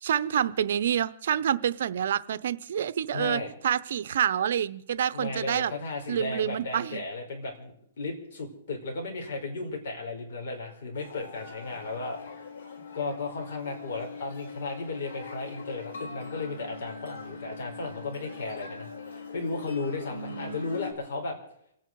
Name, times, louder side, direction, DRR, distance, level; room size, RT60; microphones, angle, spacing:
voice 1, 0.0-5.7 6.1-7.0 20.1-20.8, right 9 dB, 65° right, 16 dB, 0.7 m, -28 dB
voice 2, 3.1-3.5 5.1-12.2 12.9-21.4, left 3 dB, 60° left, 1 dB, 5.3 m, -35 dB
sound 1, 10.9-20.9, left 5 dB, 85° left, 4.2 m, -42 dB
28.5 x 9.6 x 4.7 m, 0.71 s
hypercardioid pair, 160°, 0 cm